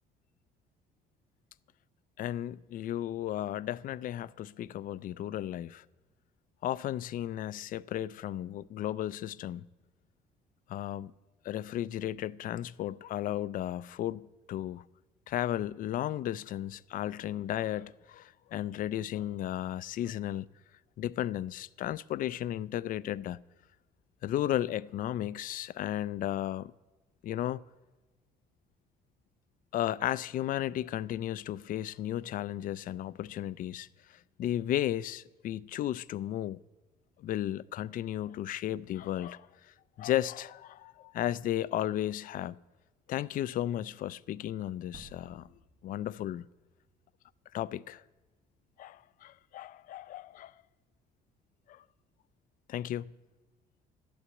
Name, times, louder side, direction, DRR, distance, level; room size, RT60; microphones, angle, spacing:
voice 1, 2.2-5.8 6.6-9.7 10.7-11.1 11.4-14.8 15.3-20.5 21.0-23.4 24.2-26.7 27.2-27.6 29.7-33.9 34.4-36.6 37.2-39.5 40.0-42.6 43.1-45.5 45.8-46.4 47.5-48.0 48.8-50.5 51.7-51.8 52.7-53.1, left 12 dB, 55° left, 0.4 m, -34 dB
sound 1, 44.9-47.9, right 5 dB, 65° right, 1.3 m, -58 dB
12.5 x 8.5 x 8.3 m
cardioid pair, 110°, 17 cm